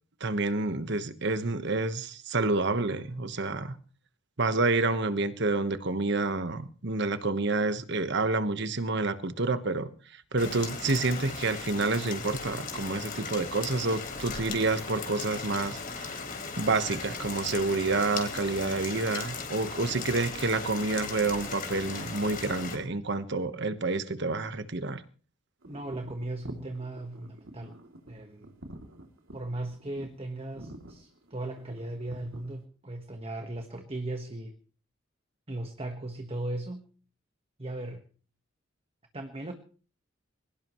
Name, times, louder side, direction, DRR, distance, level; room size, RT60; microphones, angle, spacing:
voice 1, 0.2-3.7 4.4-16.2 16.6-25.0, right 3 dB, 60° right, 11 dB, 1.3 m, -29 dB
Rain, 10.4-22.7, left 5 dB, 45° left, 3.8 m, -37 dB
voice 2, 25.6-27.7 28.1-28.5 29.3-34.5 35.5-36.8 37.6-38.0 39.1-39.5, right 2 dB, 30° right, 5 dB, 1.4 m, -37 dB
sound 1, 25.6-32.6, right 1 dB, 80° right, 2.9 m, -48 dB
22.5 x 18.5 x 3.1 m, 0.39 s
head